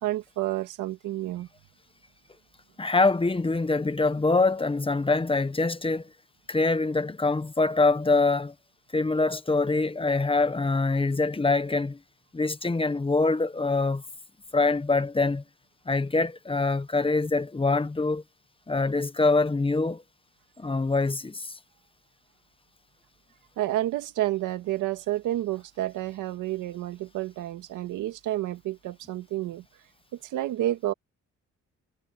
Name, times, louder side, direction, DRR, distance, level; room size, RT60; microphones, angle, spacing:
voice 1, 0.0-1.5 23.6-29.6 30.2-30.9, right 14 dB, 90° right, 2.0 m, -30 dB
voice 2, 2.8-6.1 6.5-8.5 8.9-12.0 12.3-14.0 14.5-15.4 15.9-18.2 18.7-20.0 20.6-21.5, left 3 dB, 20° left, 1.1 m, -24 dB
cardioid pair, 90°, 30 cm